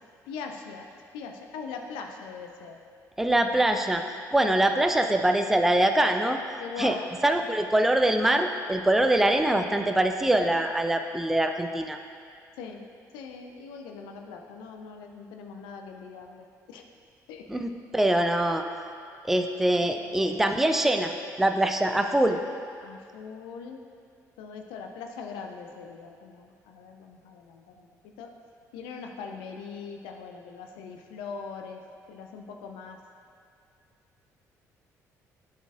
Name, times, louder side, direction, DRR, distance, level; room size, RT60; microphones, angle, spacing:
voice 1, 0.3-0.9 1.1-2.8 4.6-4.7 6.6-7.0 12.6-16.8 17.3-17.7 19.8-20.4 22.8-23.8 24.4-28.3 28.7-31.8 32.1-33.0, left 5 dB, 65° left, 4 dB, 0.4 m, -41 dB
voice 2, 3.2-4.0 4.3-6.4 6.8-7.0 7.2-12.0 17.5-18.7 19.2-22.4, right 1 dB, 5° right, 6 dB, 0.4 m, -23 dB
11.0 x 4.3 x 2.4 m, 2.3 s
figure-of-eight pair, 45°, 9 cm